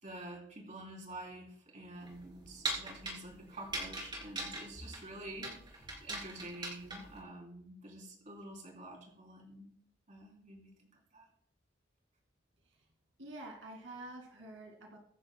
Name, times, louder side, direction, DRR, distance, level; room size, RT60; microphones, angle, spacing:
voice 1, 0.0-9.7 10.1-11.3, right 1 dB, 40° right, 0 dB, 3.2 m, -48 dB
sound 1, 2.0-7.2, right 2 dB, 25° right, 3.2 m, -41 dB
voice 2, 13.2-15.0, right 2 dB, 80° right, 1 dB, 2.3 m, -47 dB
23.0 x 10.5 x 2.2 m, 0.64 s
head